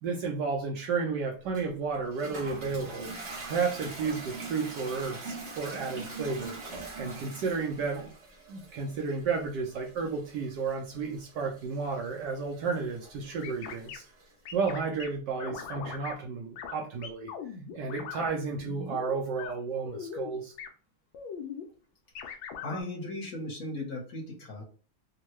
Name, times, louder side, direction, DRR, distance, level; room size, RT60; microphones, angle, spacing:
voice 1, 0.0-3.1 3.4-6.6 7.0-8.1 8.5-14.0 14.5-17.3 17.8-20.5, right 5 dB, 70° right, 2 dB, 1.1 m, -32 dB
Toilet flush, 1.5-14.3, right 3 dB, 50° right, 0.8 m, -44 dB
sound 1, 13.4-14.0 14.5-15.1 15.4-16.2 16.6-16.8 17.0-18.3 18.6-19.5 19.9-20.3 20.6-20.7 21.1-21.6 22.2-22.8, left 7 dB, 80° left, 1.3 m, -40 dB
voice 2, 22.2-24.6, left 1 dB, 55° left, -2 dB, 1.4 m, -38 dB
3.5 x 2.2 x 3.0 m, 0.39 s
omnidirectional pair, 2.2 m